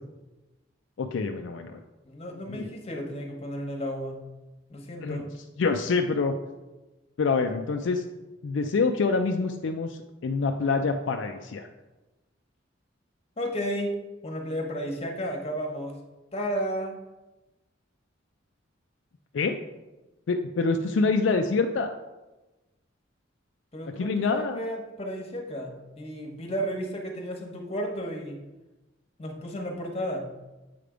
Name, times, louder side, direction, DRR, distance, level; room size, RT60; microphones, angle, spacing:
voice 1, 1.0-1.8 2.5-2.7 5.0-5.2 5.6-6.4 7.2-8.0 8.4-11.7 19.3-19.6 20.3-21.9 24.0-24.6, left 4 dB, 70° left, 5 dB, 0.4 m, -26 dB
voice 2, 2.0-4.2 4.7-5.3 13.4-13.9 14.2-16.0 16.3-16.9 23.7-28.4 29.2-30.3, equal, 30° left, 2 dB, 1.0 m, -33 dB
7.6 x 3.4 x 5.0 m, 1.1 s
head